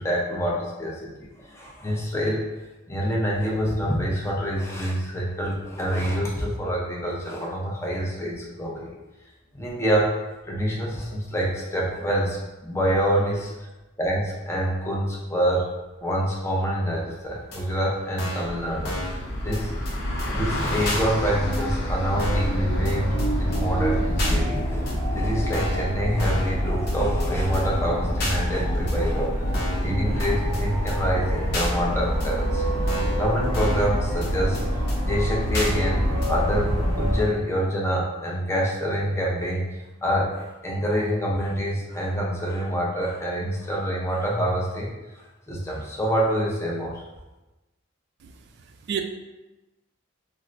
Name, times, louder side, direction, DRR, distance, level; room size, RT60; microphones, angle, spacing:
voice 1, 0.0-2.4 2.9-8.9 9.5-10.1 10.5-13.5 14.0-15.6 16.0-19.8 20.2-29.3 29.8-32.6 33.2-34.6 35.0-39.6 40.0-47.0, equal, 15° left, -3 dB, 0.5 m, -26 dB
Car passing by, 17.2-17.3 17.4-24.3, left 1 dB, 85° left, 0.8 m, -36 dB
sound 1, 17.5-17.6 18.2-18.5 18.8-19.2 19.5-19.6 19.8-19.9 20.2-20.3 20.8-21.0 21.5-21.6 22.2-22.5 22.8-22.9 23.2-23.3 23.5-23.6 24.2-24.4 24.9-25.0 25.5-25.9 26.2-26.5 26.9-27.0 27.2-27.3 27.5-27.6 28.2-28.4 28.9-29.0 29.5-29.9 30.2-30.3 30.5-30.6 30.9-31.0 31.5-31.7 32.2-32.3 32.9-33.2 33.5-33.9 34.2-34.3 34.5-34.6 34.9-35.0 35.5-35.7 36.2-36.3, left 1 dB, 55° left, 0.8 m, -31 dB
sound 2, 18.4-37.2, equal, 85° right, 1.0 m, -26 dB
voice 2, 48.2-49.0, right 8 dB, 55° right, 4 dB, 0.3 m, -33 dB
4.2 x 2.1 x 2.5 m, 1.0 s
head